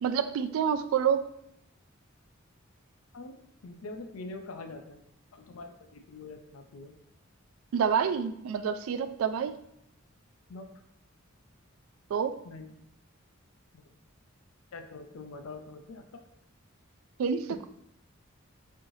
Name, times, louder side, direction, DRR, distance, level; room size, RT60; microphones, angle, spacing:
voice 1, 0.0-1.2 7.7-9.6 12.1-12.4 17.2-17.7, right 7 dB, 80° right, 11 dB, 0.3 m, -28 dB
voice 2, 3.6-5.0 5.3-6.9 10.5-10.7 12.4-12.7 13.7-13.8 14.7-16.0 17.5-17.6, left 3 dB, 80° left, 5 dB, 0.5 m, -44 dB
4.3 x 3.1 x 2.7 m, 0.76 s
head